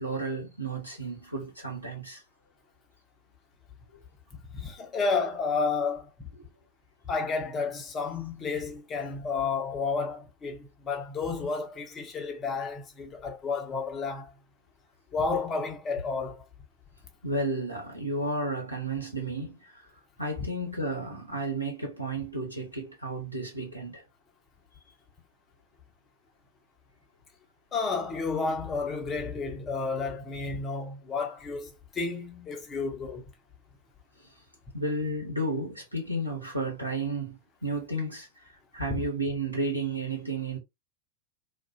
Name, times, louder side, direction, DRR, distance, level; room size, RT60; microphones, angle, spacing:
voice 1, 0.0-2.2 17.2-19.7 20.2-24.0 34.7-38.3 38.7-40.6, right 2 dB, 90° right, 0.9 m, -32 dB
voice 2, 4.5-6.1 7.1-14.3 15.1-16.4 27.7-33.3 38.9-39.0, left 4 dB, 25° left, 0.7 m, -31 dB
2.4 x 2.2 x 2.3 m
figure-of-eight pair, 90°, 0 cm